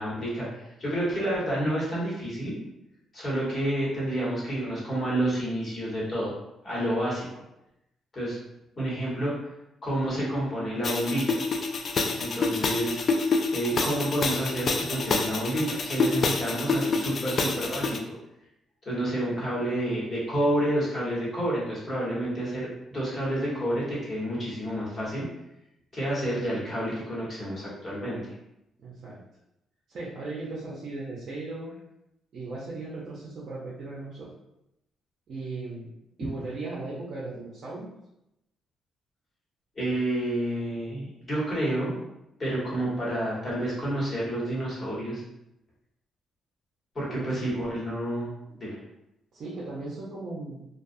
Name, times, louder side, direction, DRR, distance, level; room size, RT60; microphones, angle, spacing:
voice 1, 0.0-2.5 3.1-6.3 6.6-7.2 8.1-8.4 8.8-9.3 9.8-11.4 12.2-13.0 13.5-18.0 18.8-25.3 25.9-28.2 39.7-42.0 42.4-45.2 46.9-48.8, right 1 dB, 35° left, -6 dB, 1.3 m, -29 dB
sound 1, 10.8-18.0, left 4 dB, 50° left, 0.3 m, -27 dB
voice 2, 28.8-29.2 29.9-31.7 32.3-34.3 35.3-35.9 36.2-37.9 47.1-47.4 49.3-50.7, right 3 dB, 60° right, -6 dB, 0.6 m, -37 dB
2.3 x 2.3 x 2.6 m, 0.86 s
cardioid pair, 90°, 0 cm